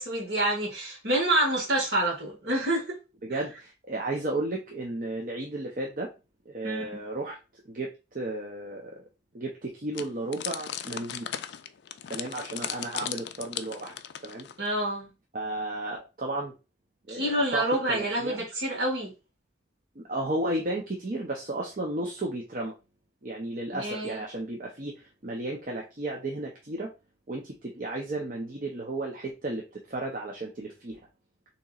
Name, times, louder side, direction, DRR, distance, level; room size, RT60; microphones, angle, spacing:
voice 1, 0.0-3.0 6.6-6.9 14.6-15.1 17.1-19.1 23.7-24.2, right 1 dB, 60° right, 1.8 m, -27 dB
voice 2, 3.2-6.1 6.5-7.4 7.6-7.9 8.1-9.0 9.3-11.4 12.1-13.9 14.2-14.5 15.3-16.5 17.1-18.4 20.0-22.7 23.2-26.9 27.3-31.0, right 2 dB, 45° right, 0.6 m, -33 dB
sound 1, 9.9-14.7, left 10 dB, 60° left, 0.3 m, -37 dB
6.8 x 2.9 x 2.4 m
head